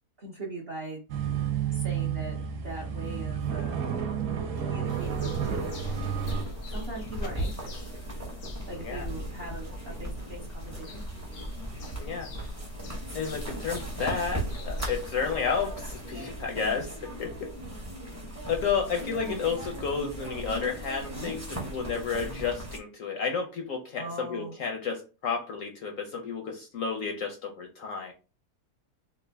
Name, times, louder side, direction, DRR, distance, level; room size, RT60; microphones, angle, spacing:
voice 1, 0.2-1.0 1.7-3.8 4.6-5.8 6.7-7.9 8.7-11.1 16.7-16.9 19.2-19.5 23.9-24.6, right 2 dB, 50° right, -2 dB, 0.7 m, -40 dB
sound 1, 1.1-6.4, right 8 dB, 75° right, 1.2 m, -31 dB
sound 2, 4.9-16.2, left 4 dB, 90° left, 1.4 m, -47 dB
sound 3, 5.0-22.8, right 1 dB, 15° right, 0.6 m, -37 dB
voice 2, 12.0-12.3 13.1-17.5 18.5-28.1, left 5 dB, 70° left, 2 dB, 0.8 m, -31 dB
3.3 x 2.3 x 3.3 m, 0.33 s
omnidirectional pair, 1.8 m